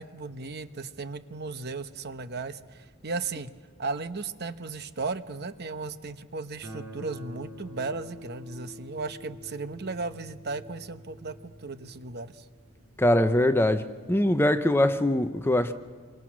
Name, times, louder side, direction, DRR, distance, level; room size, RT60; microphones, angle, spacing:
voice 1, 0.0-12.4, right 3 dB, 50° right, 0.9 m, -36 dB
Guitar, 6.6-13.3, equal, 80° right, 7.1 m, -47 dB
voice 2, 13.0-13.8 14.1-15.7, left 1 dB, 10° left, 0.7 m, -22 dB
28.0 x 24.0 x 6.2 m
head